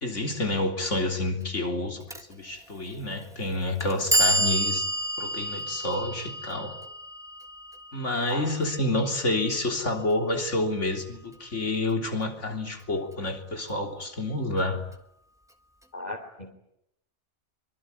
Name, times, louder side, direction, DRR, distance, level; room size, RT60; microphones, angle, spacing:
voice 1, 0.0-4.9 5.2-6.7 7.9-14.8, left 2 dB, 85° left, 4 dB, 3.8 m, -29 dB
Clock, 2.1-2.2 3.2-3.3 3.8-9.8, right 1 dB, 5° right, 1.6 m, -30 dB
voice 2, 15.9-16.5, left 2 dB, 35° left, 0 dB, 3.2 m, -36 dB
24.0 x 23.5 x 9.7 m, 0.80 s
omnidirectional pair, 1.2 m